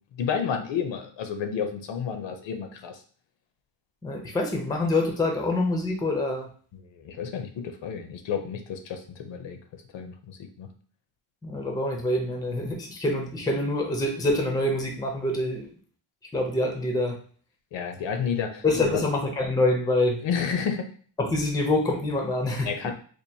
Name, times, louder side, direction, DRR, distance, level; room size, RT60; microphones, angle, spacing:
voice 1, 0.1-3.0 6.7-9.6 9.9-10.7 17.7-19.0 20.2-20.9 22.6-22.9, left 7 dB, 70° left, 6 dB, 0.7 m, -31 dB
voice 2, 4.0-6.5 11.4-15.7 16.3-17.2 18.6-20.2 21.2-22.9, left 2 dB, 10° left, 2 dB, 0.5 m, -26 dB
4.5 x 2.5 x 2.7 m, 0.43 s
wide cardioid pair, 165°, 46 cm